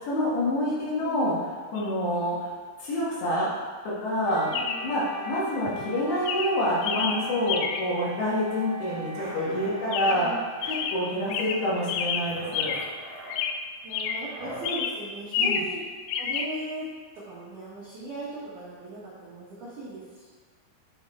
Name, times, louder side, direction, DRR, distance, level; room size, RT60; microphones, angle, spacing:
voice 1, 0.0-1.4 1.7-2.5 2.8-3.5 3.8-10.3 10.7-12.8 15.4-15.6, left 1 dB, 70° left, -6 dB, 3.4 m, -27 dB
voice 2, 0.6-1.4 4.5-4.9 9.3-10.4 11.3-11.4 11.7-12.2 13.8-15.8 16.2-16.9 17.1-20.3, right 2 dB, 80° right, -8 dB, 1.7 m, -39 dB
Chirp tweet, 1.8-1.9 4.5-4.9 5.7-5.9 6.3-8.0 9.9-10.4 10.6-13.0 13.3-14.3 14.6-15.8 16.1-16.5, left 7 dB, 90° left, 2.5 m, -30 dB
Wind instrument woodwind instrument, 4.2-12.3, right 2 dB, 45° left, 2.7 m, -40 dB
sound 1, 8.9-10.2 10.6-11.5 11.7-14.7, right 1 dB, 60° right, 2.5 m, -44 dB
9.5 x 4.6 x 3.4 m, 1.5 s
omnidirectional pair, 5.6 m